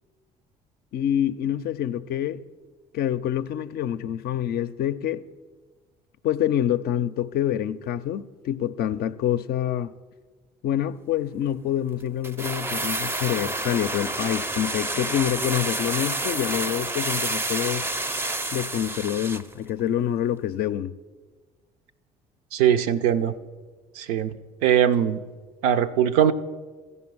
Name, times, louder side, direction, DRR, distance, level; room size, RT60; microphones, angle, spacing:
voice 1, 0.9-2.4 2.9-5.2 6.2-9.9 10.6-17.8 18.5-20.9, left 10 dB, 55° left, 0.5 m, -26 dB
sound 1, 12.2-19.5 19.8-19.9, right 2 dB, 10° right, 0.5 m, -29 dB
voice 2, 22.5-23.3 24.0-24.3 24.6-25.2 25.6-26.3, right 9 dB, 75° right, 0.5 m, -20 dB
14.0 x 5.5 x 6.1 m
hypercardioid pair, 55°, 20 cm